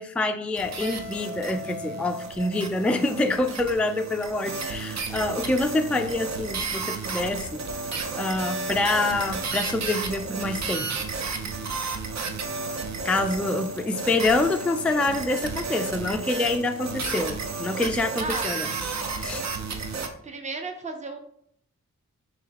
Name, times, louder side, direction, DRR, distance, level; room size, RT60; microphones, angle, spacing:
voice 1, 0.0-7.6 8.1-10.9 13.0-18.7 19.2-19.4, left 2 dB, 5° left, 6 dB, 0.4 m, -26 dB
sound 1, 0.6-20.1, right 4 dB, 55° right, 0.7 m, -32 dB
Guitar, 0.8-3.6, left 2 dB, 85° left, 0.5 m, -40 dB
voice 2, 18.2-18.5 20.2-21.2, right 3 dB, 20° right, 5 dB, 0.7 m, -33 dB
5.6 x 3.1 x 2.9 m, 0.68 s
cardioid pair, 65°, 32 cm